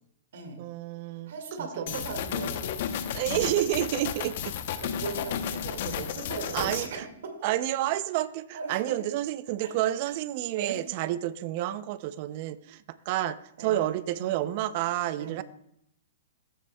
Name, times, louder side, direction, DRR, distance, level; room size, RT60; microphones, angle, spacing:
voice 1, 0.6-1.3 1.9-2.0 3.1-4.5 6.5-7.0 7.4-15.4, right 14 dB, 45° right, 16 dB, 0.5 m, -30 dB
voice 2, 1.3-3.0 4.8-7.0 8.5-8.7 9.6-9.7 10.5-10.8 13.6-14.6 15.2-15.4, right 5 dB, 65° right, 4 dB, 2.0 m, -38 dB
sound 1, 1.9-6.9, left 9 dB, 55° left, 0.8 m, -33 dB
15.0 x 7.4 x 2.3 m, 0.75 s
hypercardioid pair, 135°, 0 cm